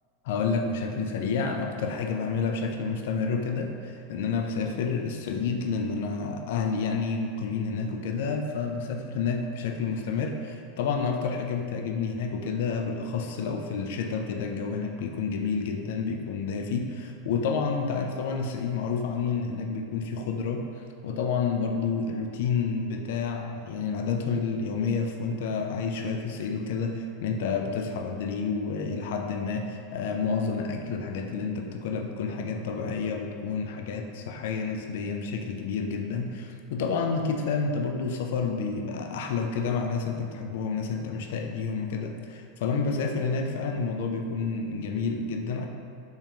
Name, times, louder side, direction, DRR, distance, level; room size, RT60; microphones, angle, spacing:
voice 1, 0.2-20.6 21.0-45.7, left 5 dB, 70° left, 3 dB, 0.3 m, -29 dB
3.5 x 3.5 x 2.8 m, 2.3 s
hypercardioid pair, 100°, 0 cm